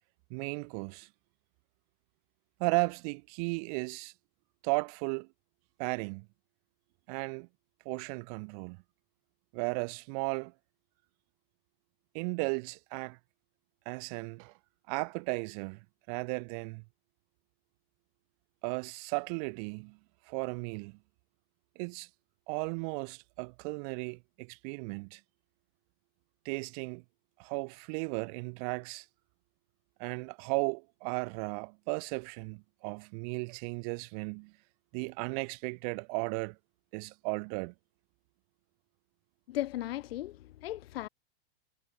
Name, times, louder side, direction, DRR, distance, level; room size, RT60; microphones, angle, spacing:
voice 1, 0.3-1.1 2.6-4.1 4.6-5.3 5.8-6.3 7.1-7.5 7.8-8.8 9.5-10.5 12.1-13.2 13.9-14.5 14.9-15.8 16.1-16.8 18.6-20.0 20.3-21.0 21.8-22.1 22.5-25.2 26.4-27.0 27.4-29.0 30.0-34.5 34.9-36.6 36.9-37.7, right 35 dB, 40° right, 1.0 m, -35 dB
voice 2, 39.5-41.1, left 14 dB, 75° left, 1.0 m, -36 dB
supercardioid pair, 155°, 31 cm